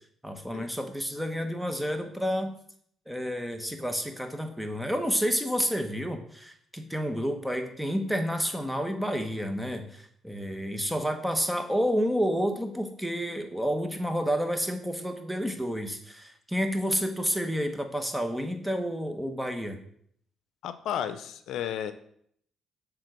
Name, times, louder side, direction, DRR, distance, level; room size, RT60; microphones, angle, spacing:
voice 1, 0.2-2.5 3.1-19.8, equal, 5° right, 6 dB, 1.1 m, -30 dB
voice 2, 20.6-21.9, left 9 dB, 80° left, 11 dB, 0.5 m, -33 dB
7.7 x 3.7 x 6.0 m, 0.65 s
cardioid pair, 90°, 0 cm